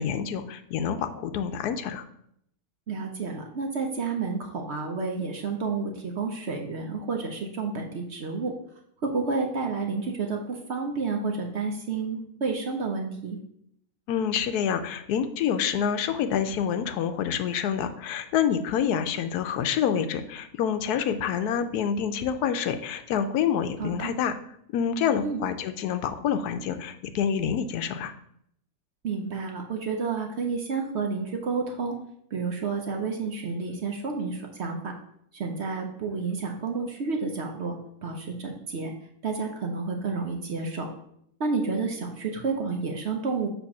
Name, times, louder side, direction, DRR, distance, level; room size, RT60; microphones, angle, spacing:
voice 1, 0.0-2.0 14.1-24.3 24.7-28.1, left 8 dB, 75° left, 10 dB, 1.1 m, -27 dB
voice 2, 2.9-8.5 9.0-13.4 23.8-24.1 25.2-25.4 29.0-32.0 32.3-35.0 35.3-38.9 39.2-40.9 41.4-43.5, right 4 dB, 55° right, 2 dB, 0.9 m, -30 dB
6.9 x 3.0 x 5.9 m, 0.71 s
omnidirectional pair, 1.7 m